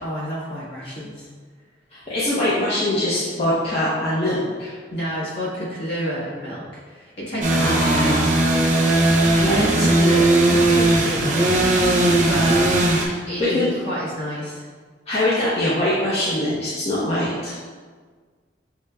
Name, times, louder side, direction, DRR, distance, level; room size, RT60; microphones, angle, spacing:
voice 1, 0.0-1.3 4.9-8.3 9.3-11.9 12.3-12.9 13.3-14.7, equal, 60° left, -7 dB, 1.3 m, -29 dB
voice 2, 1.9-4.8 7.5-8.3 9.4-9.9 13.0-13.7 15.1-17.6, left 1 dB, 35° left, -9 dB, 0.5 m, -23 dB
sound 1, 7.4-13.1, right 2 dB, 40° right, 0.4 m, -18 dB
6.2 x 2.1 x 2.2 m, 1.6 s
head